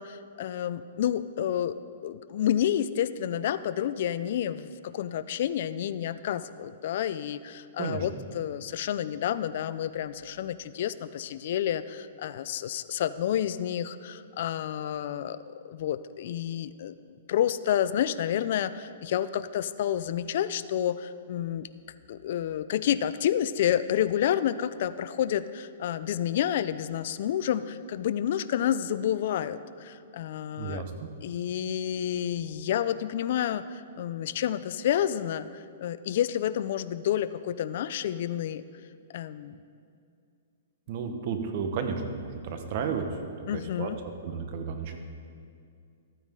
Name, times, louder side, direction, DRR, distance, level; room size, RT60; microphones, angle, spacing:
voice 1, 0.0-17.0 17.3-21.7 22.1-30.8 31.2-38.6 39.1-39.6 43.5-44.0, left 10 dB, 55° left, 14 dB, 0.4 m, -29 dB
voice 2, 30.6-31.1 40.9-43.0 43.5-43.9 44.2-45.0, right 6 dB, 45° right, 5 dB, 1.2 m, -32 dB
14.0 x 9.2 x 3.7 m, 2.3 s
hypercardioid pair, 145°, 0 cm